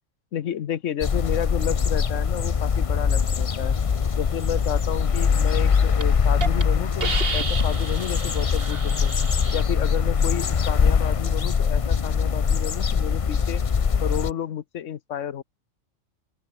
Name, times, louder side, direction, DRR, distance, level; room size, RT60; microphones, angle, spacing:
voice 1, 0.3-3.8 4.2-9.1 9.5-13.6 14.0-15.4, left 9 dB, 75° left, 1.2 m, -31 dB
sound 1, 1.0-14.3, left 6 dB, 35° left, 0.5 m, -22 dB
Hiss, 5.4-5.6 6.0-6.1 6.4-6.6 7.0-9.6, right 4 dB, 50° right, 1.9 m, -31 dB
open air
omnidirectional pair, 1.3 m